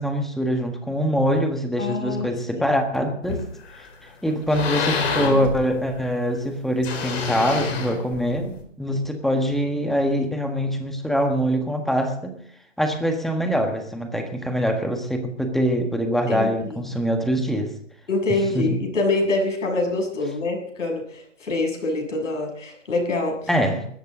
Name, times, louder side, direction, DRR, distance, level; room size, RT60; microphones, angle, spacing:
voice 1, 0.0-3.4 3.8-3.9 4.2-12.3 12.8-17.7 18.5-18.8 23.5-23.9, equal, ahead, 4 dB, 1.6 m, -24 dB
voice 2, 1.8-2.3 2.6-2.7 16.3-16.9 18.1-23.4, left 2 dB, 75° left, 2 dB, 7.3 m, -25 dB
sound 1, 3.2-3.9 4.3-6.1 6.8-8.6, left 4 dB, 55° left, 4.5 m, -27 dB
20.5 x 14.0 x 3.9 m, 0.64 s
hypercardioid pair, 140°, 38 cm